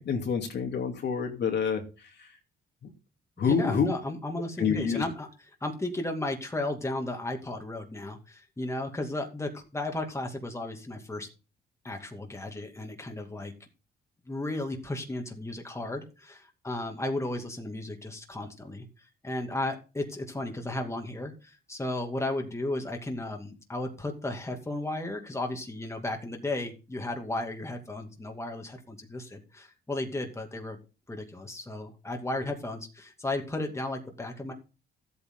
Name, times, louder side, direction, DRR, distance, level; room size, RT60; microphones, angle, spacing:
voice 1, 0.0-1.8 3.4-3.9 4.6-5.0, left 6 dB, 60° left, 3 dB, 2.7 m, -27 dB
voice 2, 3.4-11.3 11.8-13.5 14.3-18.9 19.2-30.8 31.1-34.5, left 2 dB, 15° left, 3 dB, 2.5 m, -34 dB
13.5 x 8.5 x 3.9 m, 0.32 s
cardioid pair, 90°, 20 cm